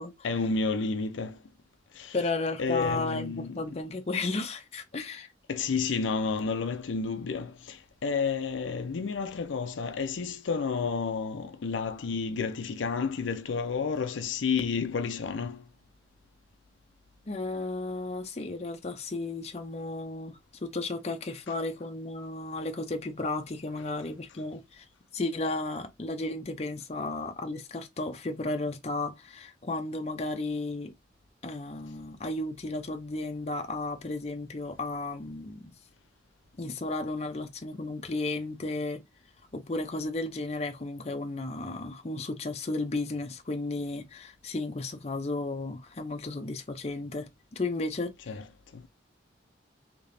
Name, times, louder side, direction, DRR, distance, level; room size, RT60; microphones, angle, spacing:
voice 1, 0.2-1.4 1.9-2.2 2.6-3.6 5.5-15.7 21.5-21.6 48.3-48.4 48.7-48.9, left 5 dB, 85° left, 0.5 m, -31 dB
voice 2, 2.1-5.3 17.3-24.8 25.1-30.9 31.4-35.7 36.6-39.0 39.5-48.1, left 2 dB, 35° left, 0.5 m, -34 dB
3.3 x 2.9 x 2.6 m
head